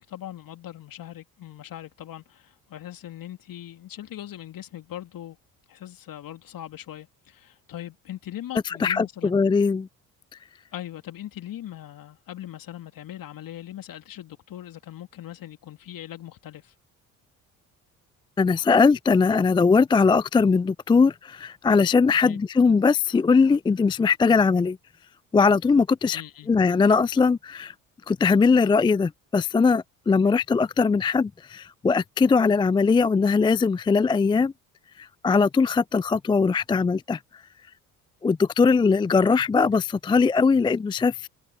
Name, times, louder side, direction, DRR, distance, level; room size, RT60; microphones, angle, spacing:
voice 1, 0.0-5.4 5.7-9.4 10.7-16.7 22.2-22.4 26.1-26.5, left 12 dB, 50° left, 3.1 m, -40 dB
voice 2, 8.7-9.9 18.4-24.8 25.3-26.2 26.5-27.7 28.1-34.5 35.0-37.2 38.2-41.3, left 4 dB, 10° left, 0.4 m, -20 dB
hypercardioid pair, 50°, 42 cm